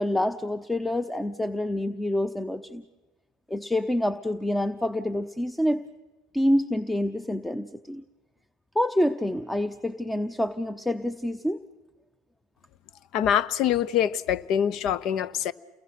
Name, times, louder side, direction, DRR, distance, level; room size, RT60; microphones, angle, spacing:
voice 1, 0.0-2.8 3.5-5.8 6.3-8.0 8.7-11.6, left 1 dB, 5° left, 0.8 m, -27 dB
voice 2, 13.1-15.5, left 9 dB, 60° left, 0.9 m, -24 dB
29.5 x 22.0 x 6.0 m
hypercardioid pair, 85°, 0 cm